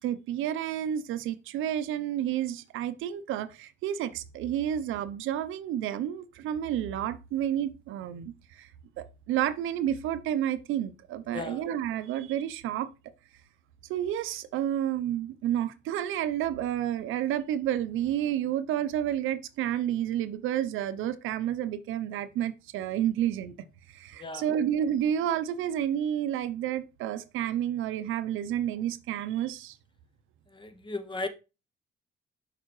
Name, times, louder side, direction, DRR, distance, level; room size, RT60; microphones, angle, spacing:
voice 1, 0.0-8.7 9.0-12.9 13.9-23.5 23.9-29.8, right 10 dB, 85° right, 0.6 m, -30 dB
voice 2, 11.3-11.6 24.1-24.4 30.5-31.3, left 3 dB, 25° left, 0.9 m, -36 dB
6.5 x 4.9 x 3.0 m
cardioid pair, 90°, 20 cm